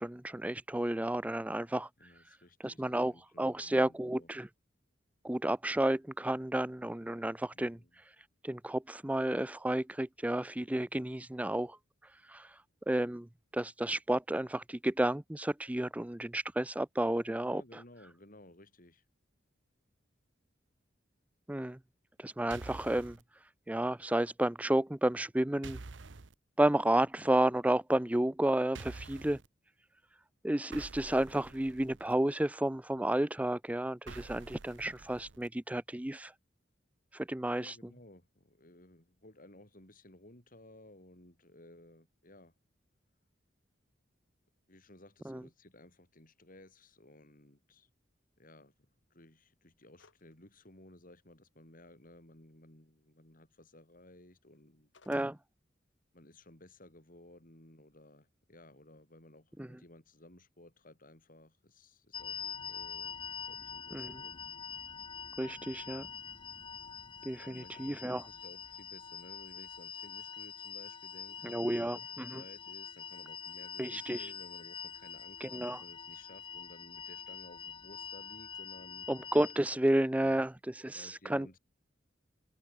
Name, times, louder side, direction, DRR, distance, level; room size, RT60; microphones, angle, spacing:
voice 1, 0.0-1.9 2.6-4.5 5.2-7.8 8.4-11.8 12.3-12.6 12.9-13.3 13.5-17.8 21.5-21.8 22.2-23.2 23.7-25.8 26.6-29.4 30.4-36.3 37.1-37.8 45.3-45.4 55.1-55.4 59.6-59.7 63.9-64.1 65.4-66.1 67.3-68.2 71.4-72.4 73.8-74.3 75.4-75.8 79.1-81.6, right 1 dB, 10° right, 0.5 m, -31 dB
voice 2, 2.0-4.3 7.5-8.0 17.4-19.0 37.6-42.5 44.7-47.9 48.4-48.7 49.1-54.9 56.1-62.4 62.7-63.2 63.5-64.5 67.4-72.0 72.3-79.1 80.9-81.6, left 1 dB, 50° left, 5.6 m, -57 dB
sound 1, 22.5-23.2 25.6-26.3 28.7-29.5 30.7-32.1 34.1-35.5, right 3 dB, 75° right, 0.9 m, -48 dB
sound 2, 50.0-50.3 50.7-50.8 54.6-55.3, left 4 dB, 75° left, 3.1 m, -60 dB
sound 3, 62.1-79.6, left 7 dB, 25° left, 0.9 m, -45 dB
head